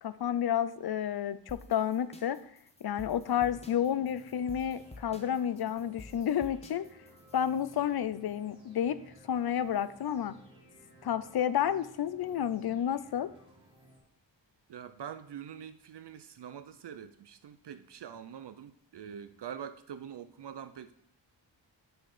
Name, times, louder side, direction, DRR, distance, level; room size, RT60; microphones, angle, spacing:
voice 1, 0.0-2.4 2.8-6.9 7.3-9.0 9.3-10.3 11.0-13.3, left 9 dB, 55° left, 14 dB, 0.6 m, -30 dB
sound 1, 1.5-7.8, left 2 dB, 15° left, 0.9 m, -51 dB
sound 2, 3.2-14.0, right 1 dB, 10° right, 4.1 m, -58 dB
voice 2, 14.7-20.9, right 8 dB, 65° right, 10 dB, 0.6 m, -44 dB
8.9 x 6.1 x 4.9 m, 0.68 s
wide cardioid pair, 125°, 44 cm